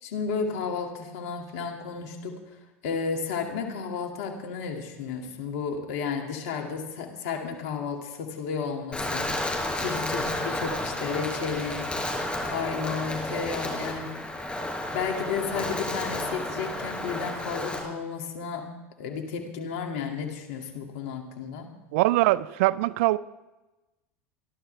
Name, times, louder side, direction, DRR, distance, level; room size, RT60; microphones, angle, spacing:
voice 1, 0.0-2.4 2.8-9.3 9.8-11.9 12.4-14.1 14.9-18.7 19.0-21.7, left 5 dB, 75° left, 2.4 m, -32 dB
Wind, 8.9-17.8, left 1 dB, 15° left, 4.7 m, -31 dB
voice 2, 21.9-23.2, right 18 dB, 70° right, 0.6 m, -22 dB
26.0 x 12.0 x 3.4 m
hypercardioid pair, 100°, 7 cm